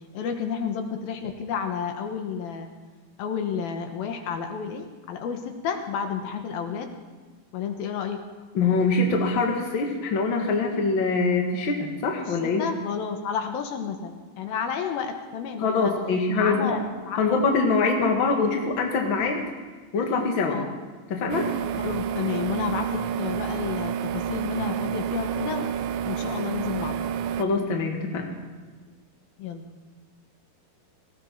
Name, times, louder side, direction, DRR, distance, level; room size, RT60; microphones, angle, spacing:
voice 1, 0.1-2.7 3.2-7.0 7.5-8.2 12.3-15.9 16.4-17.4 20.5-20.7 21.7-25.7 26.0-27.1 29.4-29.7, left 7 dB, 75° left, 5 dB, 2.9 m, -31 dB
voice 2, 8.5-12.6 15.6-16.8 17.2-19.4 19.9-20.6 21.1-21.5 27.4-28.3, left 4 dB, 45° left, 2 dB, 1.8 m, -24 dB
sound 1, 21.3-27.4, right 8 dB, 80° right, 2.0 m, -29 dB
18.5 x 16.5 x 4.6 m, 1.4 s
omnidirectional pair, 4.4 m